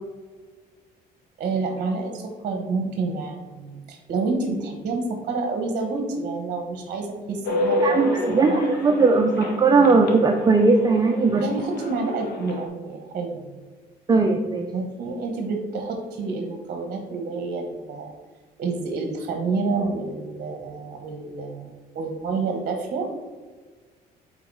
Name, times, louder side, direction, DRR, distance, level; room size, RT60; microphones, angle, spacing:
voice 1, 1.4-8.6 11.4-13.6 14.7-18.1 18.6-23.1, right 3 dB, 50° right, 4 dB, 1.1 m, -29 dB
sound 1, 7.4-12.7, left 2 dB, 70° left, 1.5 m, -30 dB
voice 2, 7.8-11.4 14.1-14.7, right 3 dB, 25° right, 3 dB, 0.6 m, -18 dB
8.2 x 4.0 x 4.7 m, 1.4 s
cardioid pair, 110°, 17 cm